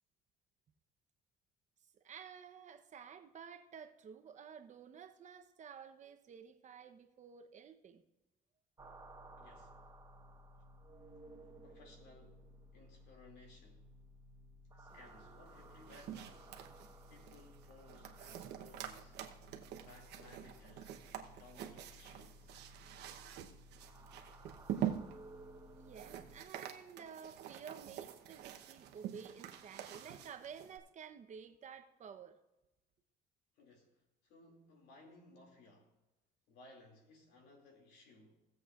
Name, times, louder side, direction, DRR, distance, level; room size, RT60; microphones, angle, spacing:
voice 1, 1.9-8.0 25.8-32.4, right 7 dB, 45° right, 0.9 m, -52 dB
sound 1, 8.8-26.4, equal, 20° right, 1.2 m, -57 dB
voice 2, 9.4-9.8 11.6-13.9 14.7-16.5 17.1-19.2 19.8-21.0 21.3-22.5 33.6-35.9 36.5-38.4, left 2 dB, 85° left, 2.6 m, -61 dB
sound 2, 15.5-30.8, right 10 dB, 85° right, 1.0 m, -46 dB
18.5 x 7.7 x 2.5 m
cardioid pair, 110°, 17 cm